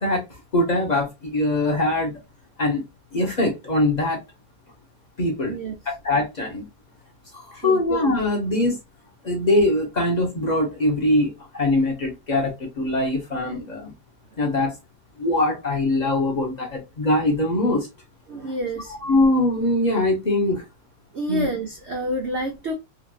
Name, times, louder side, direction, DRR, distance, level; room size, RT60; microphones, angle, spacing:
voice 1, 0.5-2.2 2.6-2.8 3.1-4.2 5.2-5.6 6.0-6.7 7.3-8.8 9.2-13.9 14.4-14.8 15.2-17.9 19.0-20.6 21.3-21.5, left 2 dB, 40° left, 0.6 m, -22 dB
voice 2, 7.5-7.8 18.3-19.0 21.1-22.7, right 1 dB, 90° right, 0.6 m, -28 dB
3.0 x 2.5 x 2.4 m
omnidirectional pair, 2.0 m